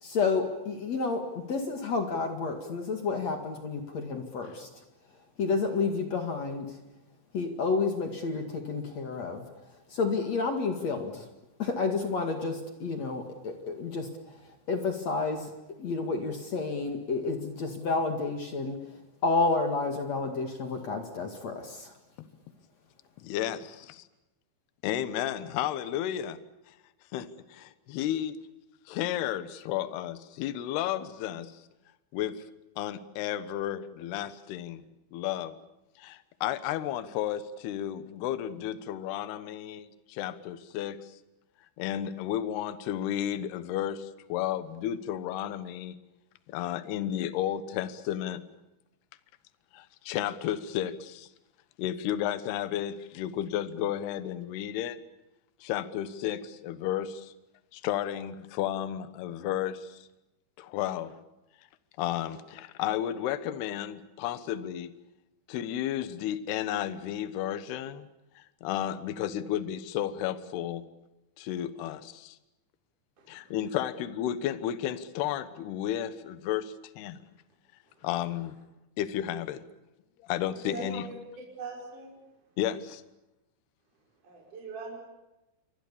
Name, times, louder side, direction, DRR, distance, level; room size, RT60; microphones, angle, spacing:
voice 1, 0.0-4.7 5.4-6.7 7.3-9.4 9.9-11.2 11.6-14.1 14.7-15.5 15.8-18.8 19.2-21.9, left 4 dB, 50° left, 5 dB, 2.2 m, -30 dB
voice 2, 23.2-24.1 24.8-26.4 26.7-26.8 27.1-28.4 28.9-31.6 32.1-32.5 32.8-34.8 35.1-35.6 36.0-41.2 41.8-46.0 46.5-48.5 49.7-51.3 51.8-55.0 55.6-57.3 57.7-60.1 60.6-61.1 62.0-64.9 65.5-68.1 68.4-70.9 71.4-72.4 73.3-77.2 78.0-78.6 79.0-79.6 80.2-81.0 82.6-83.0, left 11 dB, 70° left, 13 dB, 2.7 m, -33 dB
voice 3, 73.2-73.6 77.9-78.1 80.6-81.2 81.6-82.1 84.2-85.0, right 2 dB, 40° right, -3 dB, 6.7 m, -41 dB
28.5 x 24.5 x 7.1 m, 0.97 s
omnidirectional pair, 5.9 m